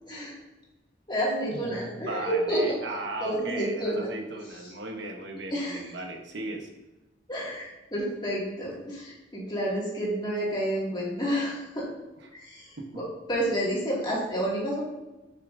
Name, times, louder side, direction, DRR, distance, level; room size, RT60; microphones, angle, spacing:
voice 1, 0.1-0.4 1.1-2.8 3.2-4.1 4.5-4.7 5.5-5.9 7.3-11.9 12.3-13.0 13.3-14.8, equal, 25° left, -5 dB, 2.1 m, -30 dB
voice 2, 1.5-6.7 12.8-12.9, right 2 dB, 80° right, 4 dB, 1.0 m, -37 dB
6.9 x 6.4 x 2.6 m, 1.1 s
head